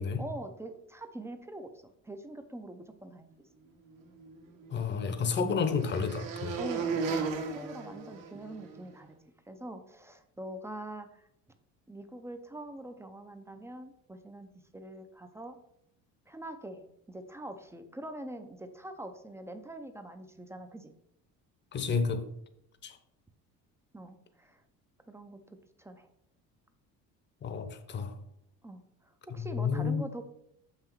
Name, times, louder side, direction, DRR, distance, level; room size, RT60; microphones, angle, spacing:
voice 1, 0.2-1.7 2.0-3.3 6.6-9.2 9.5-11.3 11.9-15.6 16.3-20.9 23.9-24.6 25.1-26.1 28.6-30.2, right 1 dB, 10° right, 0.5 m, -44 dB
sound 1, 4.2-8.8, right 5 dB, 80° right, 1.6 m, -36 dB
voice 2, 4.7-6.6 21.7-22.3 22.8-23.0 27.4-28.1 29.5-30.1, left 5 dB, 35° left, 0.8 m, -31 dB
6.6 x 5.7 x 4.5 m
cardioid pair, 140°, 33 cm